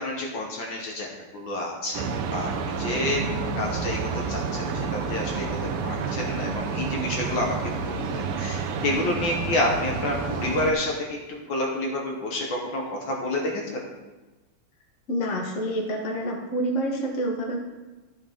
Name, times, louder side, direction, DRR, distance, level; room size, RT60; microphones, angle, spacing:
voice 1, 0.0-3.3 3.6-5.6 5.8-7.5 7.8-11.2 11.5-13.6, left 1 dB, 60° left, -1 dB, 2.0 m, -29 dB
sound 1, 1.9-10.7, right 5 dB, 85° right, 1.7 m, -29 dB
voice 2, 15.1-17.6, right 1 dB, 40° left, 0 dB, 1.6 m, -27 dB
12.5 x 6.5 x 3.7 m, 1.2 s
omnidirectional pair, 2.4 m